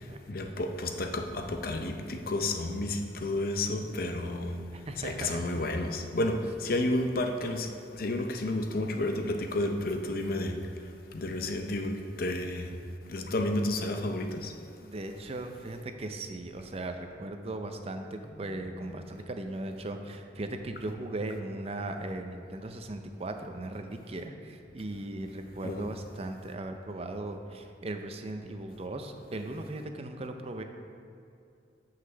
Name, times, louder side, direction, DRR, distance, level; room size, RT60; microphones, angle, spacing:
voice 1, 0.3-4.6 5.0-10.5 11.1-12.7 13.1-14.5 18.3-18.4 25.6-25.9, left 1 dB, 55° left, 5 dB, 0.6 m, -31 dB
voice 2, 4.0-4.3 4.7-5.4 14.8-30.6, right 2 dB, 35° right, 6 dB, 0.5 m, -38 dB
6.2 x 5.8 x 6.8 m, 2.5 s
head